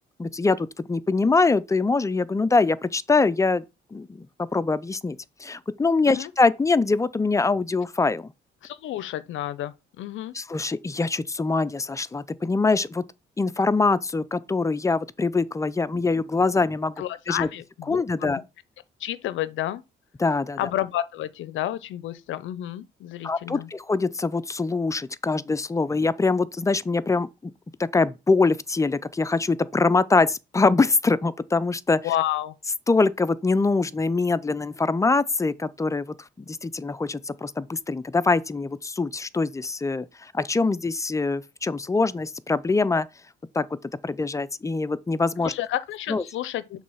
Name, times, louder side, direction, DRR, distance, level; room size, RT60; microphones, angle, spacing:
voice 1, 0.2-3.6 3.9-8.3 10.3-13.0 13.4-17.5 17.9-18.4 20.2-20.6 23.2-27.5 27.8-32.0 32.9-43.1 43.5-43.7 44.0-45.5 46.1-46.2, left 3 dB, 15° left, 0.4 m, -24 dB
voice 2, 8.6-10.3 17.0-18.4 19.0-19.8 20.6-23.7 32.0-32.6 45.4-46.8, left 13 dB, 75° left, 0.5 m, -30 dB
6.5 x 3.2 x 5.5 m
cardioid pair, 90°, 20 cm